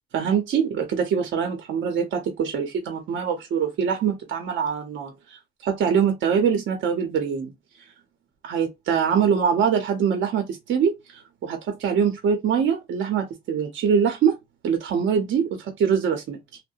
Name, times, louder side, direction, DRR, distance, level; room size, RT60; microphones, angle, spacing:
voice 1, 0.1-7.5 8.4-14.4 14.6-16.4, right 7 dB, 70° right, 0.7 m, -24 dB
2.7 x 2.1 x 2.4 m
cardioid pair, 90°, 20 cm